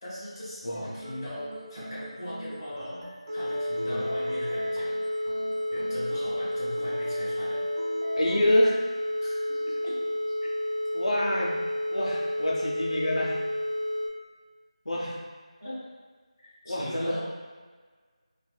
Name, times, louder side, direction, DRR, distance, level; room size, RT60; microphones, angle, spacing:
voice 1, 0.0-4.9 5.7-7.6 9.2-10.3 15.6-15.8 16.4-17.2, left 1 dB, 30° left, -12 dB, 1.4 m, -39 dB
sound 1, 0.7-8.7, equal, 35° right, 0.7 m, -42 dB
sound 2, 3.3-14.1, left 1 dB, 5° left, 0.5 m, -30 dB
voice 2, 8.1-8.8 10.9-11.6 11.9-13.4 14.9-15.2 16.6-17.2, left 1 dB, 85° left, -4 dB, 0.6 m, -27 dB
4.3 x 2.5 x 2.3 m, 1.5 s
figure-of-eight pair, 175°, 3 cm